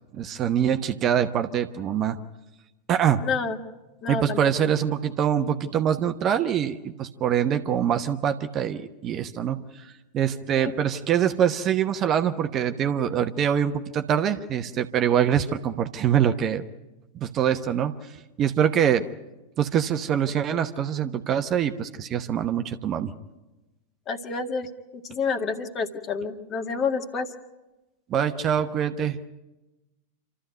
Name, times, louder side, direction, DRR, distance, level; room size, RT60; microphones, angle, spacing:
voice 1, 0.1-2.2 2.9-3.2 4.1-9.9 10.1-16.6 17.2-18.1 18.4-19.1 19.6-23.1 28.1-29.2, right 9 dB, 30° right, 9 dB, 1.0 m, -24 dB
voice 2, 3.2-3.6 4.0-4.4 10.6-10.7 24.1-27.3, left 5 dB, 30° left, 7 dB, 1.9 m, -29 dB
27.5 x 14.0 x 9.3 m, 1.0 s
figure-of-eight pair, 90°, 0 cm